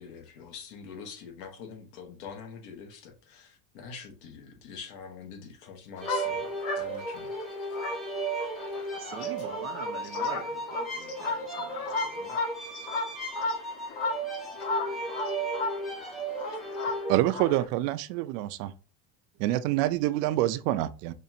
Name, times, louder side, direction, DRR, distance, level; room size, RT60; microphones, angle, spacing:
voice 1, 0.0-6.5 6.7-7.4, left 6 dB, 75° left, 1.3 m, -45 dB
sound 1, 6.0-17.6, left 3 dB, 60° left, 1.4 m, -35 dB
sound 2, 6.0-17.3, right 2 dB, ahead, 0.7 m, -35 dB
voice 2, 8.9-12.4 16.8-16.9 19.9-20.0, right 8 dB, 30° right, 0.4 m, -43 dB
voice 3, 17.1-18.7 19.4-21.1, right 15 dB, 90° right, 0.6 m, -26 dB
5.3 x 2.5 x 2.7 m
cardioid pair, 140°, 46 cm